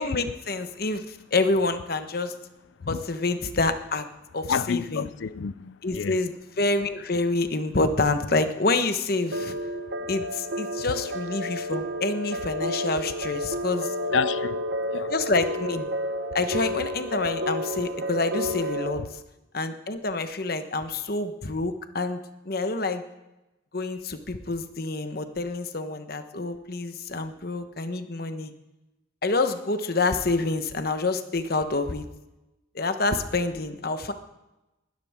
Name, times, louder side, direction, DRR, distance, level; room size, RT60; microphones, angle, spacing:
voice 1, 0.0-2.4 2.9-4.1 4.3-5.1 5.8-9.6 10.1-13.9 15.1-15.9 16.3-19.2 19.5-22.2 22.4-23.0 23.7-28.5 29.2-32.1 32.7-34.1, left 3 dB, 55° left, 1.1 m, -27 dB
voice 2, 4.5-6.2 14.1-14.6 14.9-15.1, left 6 dB, 75° left, 0.4 m, -29 dB
sound 1, 9.3-18.9, equal, 65° right, 1.2 m, -31 dB
20.0 x 13.0 x 3.6 m
head